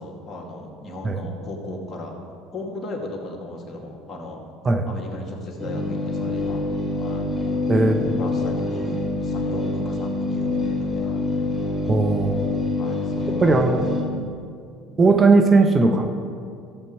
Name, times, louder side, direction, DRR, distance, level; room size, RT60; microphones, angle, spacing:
voice 1, 0.0-2.2 2.5-4.4 4.9-6.6 7.0-7.6 8.2-11.3 12.8-13.7, left 2 dB, 35° left, -1 dB, 2.5 m, -36 dB
sound 1, 5.6-14.0, left 2 dB, ahead, 3.2 m, -26 dB
voice 2, 7.7-8.2 11.9-12.5 13.4-13.8 15.0-16.1, right 3 dB, 30° right, 4 dB, 1.0 m, -18 dB
14.5 x 7.7 x 4.7 m, 2.3 s
hypercardioid pair, 70°, 0 cm